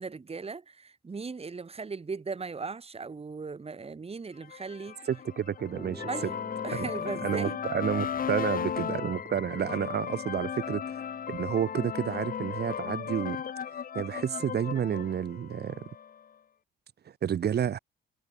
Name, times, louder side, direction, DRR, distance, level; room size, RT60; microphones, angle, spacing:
voice 1, 0.0-5.1 6.1-6.3 6.6-7.6, right 4 dB, 30° right, 4.5 m, -38 dB
sound 1, 4.4-16.2, left 8 dB, 45° left, 1.0 m, -36 dB
voice 2, 5.1-6.1 6.7-6.8 7.2-10.8 11.3-13.4 13.9-15.8 17.2-17.8, right 9 dB, 55° right, 1.8 m, -30 dB
sound 2, 5.7-13.4, equal, ahead, 2.5 m, -50 dB
cardioid pair, 90°, 20 cm